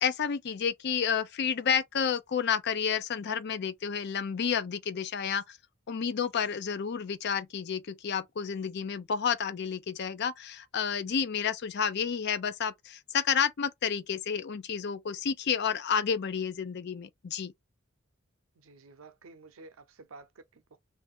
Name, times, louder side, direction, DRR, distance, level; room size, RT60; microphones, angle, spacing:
voice 1, 0.0-5.6 5.9-17.5, left 7 dB, 55° left, 0.5 m, -30 dB
voice 2, 18.6-20.8, right 3 dB, 85° right, 0.6 m, -52 dB
2.6 x 2.5 x 3.5 m
head